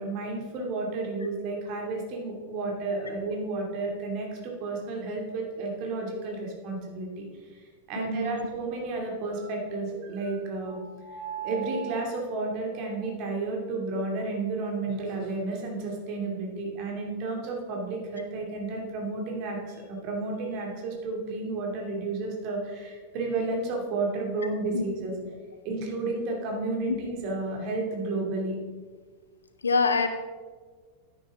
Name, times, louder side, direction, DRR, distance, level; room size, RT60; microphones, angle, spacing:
voice 1, 0.0-7.3 7.5-25.1 25.6-28.6, right 3 dB, 40° right, 1 dB, 2.4 m, -32 dB
voice 2, 8.0-8.4 24.7-24.8 26.9-27.0 29.6-30.1, left 4 dB, 75° left, 8 dB, 0.9 m, -25 dB
9.9 x 9.6 x 3.7 m, 1.5 s
figure-of-eight pair, 90°, 0 cm